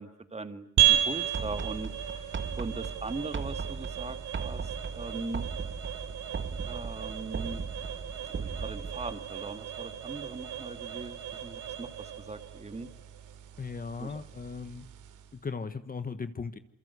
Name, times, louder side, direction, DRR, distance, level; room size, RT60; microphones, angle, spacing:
voice 1, 0.0-5.5 6.6-7.7 8.2-12.9 14.0-14.2, right 3 dB, 20° right, 9 dB, 2.1 m, -40 dB
sound 1, 0.8-15.4, right 11 dB, 80° right, 2.9 m, -34 dB
sound 2, 1.3-9.2, right 5 dB, 40° right, 1.9 m, -38 dB
voice 2, 13.6-14.9 15.3-16.6, left 5 dB, 30° left, 11 dB, 1.4 m, -37 dB
28.0 x 23.0 x 8.3 m, 0.75 s
cardioid pair, 90°, 30 cm